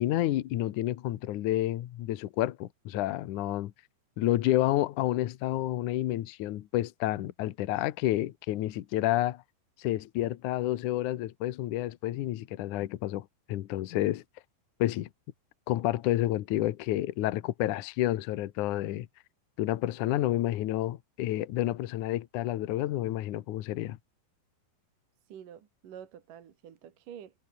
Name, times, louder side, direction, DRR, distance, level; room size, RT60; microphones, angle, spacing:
voice 1, 0.0-3.7 4.2-9.4 9.8-14.2 14.8-15.1 15.7-19.1 19.6-24.0, left 14 dB, 90° left, 1.7 m, -30 dB
voice 2, 25.3-27.3, right 9 dB, 55° right, 3.2 m, -48 dB
omnidirectional pair, 5.3 m